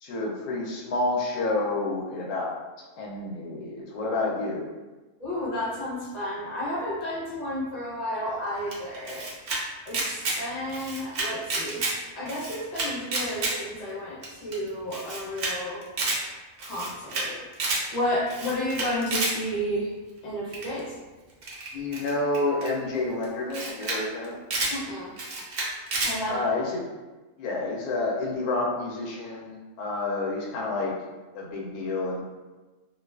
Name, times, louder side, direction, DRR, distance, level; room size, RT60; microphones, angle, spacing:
voice 1, 0.0-2.5 2.8-4.7 21.7-24.4 26.3-26.8 27.4-30.9 31.3-32.2, left 2 dB, 90° left, -2 dB, 1.1 m, -29 dB
voice 2, 5.2-9.3 9.9-11.8 12.2-15.8 16.6-17.5 17.9-19.9 20.2-20.9 24.7-25.1 26.0-26.4, left 1 dB, 35° left, -7 dB, 0.7 m, -31 dB
Camera, 8.7-9.6 9.9-10.4 10.7-11.9 12.3-13.5 13.9-14.0 14.2-14.3 14.5-14.6 14.9-15.5 15.8-16.2 16.6-17.2 17.5-17.8 18.3-19.3 20.5-20.8 21.4-22.7 23.2-23.3 23.5-24.0 24.2-24.7 25.2-26.1, right 3 dB, 65° right, 0.5 m, -29 dB
2.5 x 2.3 x 2.3 m, 1.2 s
omnidirectional pair, 1.5 m